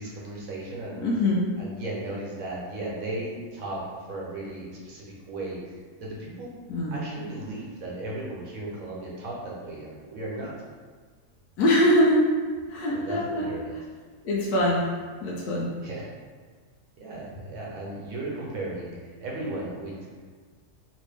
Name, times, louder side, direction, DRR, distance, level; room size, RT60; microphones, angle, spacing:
voice 1, 0.0-1.0 1.6-6.5 6.9-10.5 12.9-13.8 15.8-16.1 17.0-20.1, right 2 dB, 65° right, -4 dB, 1.1 m, -36 dB
voice 2, 1.0-1.5 6.7-7.0 11.6-12.2 12.7-13.5 14.2-14.8 15.2-15.7, left 1 dB, 85° left, -4 dB, 1.2 m, -23 dB
3.1 x 2.6 x 3.4 m, 1.5 s
omnidirectional pair, 1.6 m